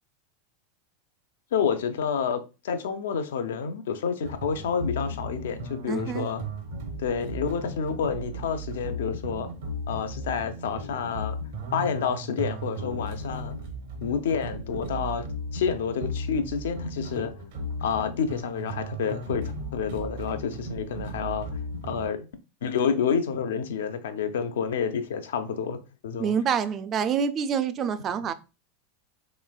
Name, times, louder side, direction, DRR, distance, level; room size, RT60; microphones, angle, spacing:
voice 1, 1.5-6.4 7.0-9.5 9.9-11.4 11.7-13.6 14.0-15.2 15.5-17.3 17.8-21.5 21.8-22.3 22.6-26.4, left 6 dB, 80° left, 0.4 m, -29 dB
sound 1, 4.2-22.1, right 1 dB, 75° right, 0.7 m, -36 dB
voice 2, 5.9-6.3 26.2-28.3, right 7 dB, 35° right, 0.3 m, -27 dB
3.1 x 3.1 x 2.2 m
hypercardioid pair, 105°, 0 cm